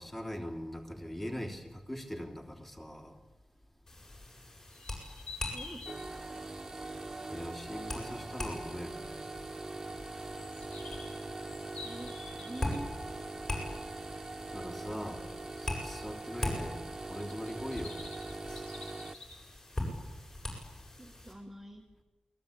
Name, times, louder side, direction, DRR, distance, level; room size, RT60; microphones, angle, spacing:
voice 1, 0.0-3.1 7.3-9.0 14.5-15.2 15.6-16.8 17.1-18.0, equal, 15° left, 2 dB, 3.2 m, -41 dB
sound 1, 3.9-21.3, left 1 dB, 30° left, 7.7 m, -42 dB
sound 2, 4.7-6.0 10.2-12.8 17.1-19.4, left 4 dB, 80° left, 6.0 m, -48 dB
voice 2, 5.5-5.9 11.8-13.1 21.0-21.8, right 1 dB, 10° right, 0 dB, 1.9 m, -46 dB
sound 3, 5.9-19.1, right 2 dB, 25° right, 1.0 m, -42 dB
28.5 x 20.5 x 8.7 m, 1.1 s
wide cardioid pair, 165°, 2 cm